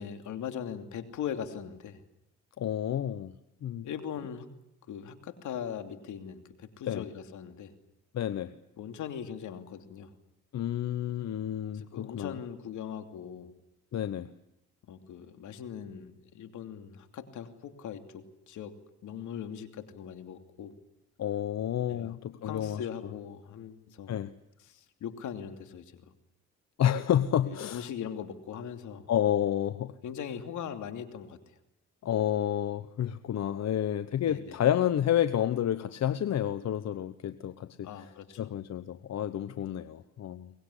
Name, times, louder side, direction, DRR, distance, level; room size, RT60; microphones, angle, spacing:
voice 1, 0.0-2.0 3.8-4.5 4.9-7.7 8.8-10.1 11.7-13.5 14.9-18.8 19.0-20.8 21.9-22.2 22.4-24.1 24.7-26.1 27.4-29.1 30.0-31.4 34.2-34.6 37.8-38.4, left 8 dB, 80° left, 7 dB, 2.9 m, -40 dB
voice 2, 2.6-3.3 3.6-3.9 6.9-7.1 8.1-8.5 10.5-12.4 13.9-14.3 21.2-22.8 24.1-24.3 26.8-27.9 29.1-29.9 32.0-38.1 38.4-40.5, left 10 dB, 60° left, 12 dB, 1.1 m, -30 dB
23.5 x 20.5 x 9.8 m, 0.84 s
cardioid pair, 90°, 30 cm